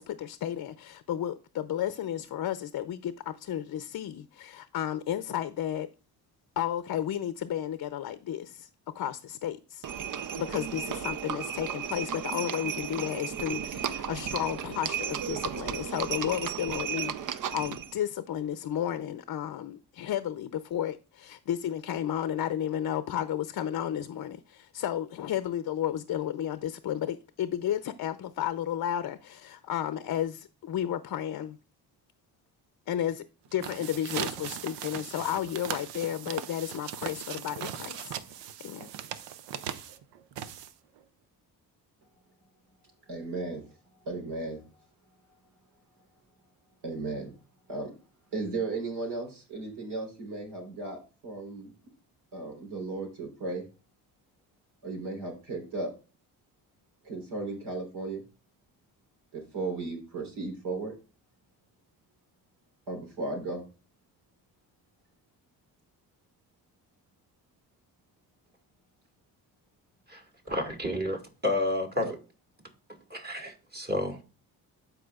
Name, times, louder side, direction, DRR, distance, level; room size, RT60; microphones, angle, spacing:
voice 1, 0.0-5.9 6.6-8.7 8.9-9.8 10.4-17.1 17.5-31.6 32.9-33.2 33.5-38.9, left 10 dB, 50° left, 0.6 m, -33 dB
Livestock farm animals working animals, 9.8-17.9, right 8 dB, 50° right, 0.6 m, -34 dB
sound 1, 33.4-41.0, right 10 dB, 90° right, 0.7 m, -39 dB
voice 2, 43.1-43.6 44.0-44.7 46.8-47.3 47.7-47.9 48.3-51.7 52.3-53.6 54.8-55.9 57.0-58.2 59.3-60.9 62.9-63.6 72.0-72.1, right 3 dB, 70° right, 3.8 m, -35 dB
voice 3, 70.1-72.1 72.9-74.2, left 1 dB, 25° right, 2.1 m, -31 dB
12.5 x 4.9 x 2.4 m
cardioid pair, 80°, 41 cm